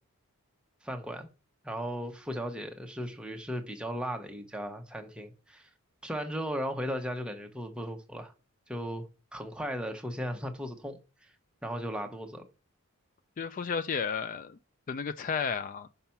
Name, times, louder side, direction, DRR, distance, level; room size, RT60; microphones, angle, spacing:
voice 1, 0.8-1.3 1.6-5.7 6.0-8.3 8.7-9.1 9.3-11.3 11.6-12.4, equal, 5° right, 0.8 m, -36 dB
voice 2, 13.4-14.6 14.9-15.9, left 6 dB, 35° left, 0.3 m, -32 dB
5.7 x 5.4 x 5.7 m
head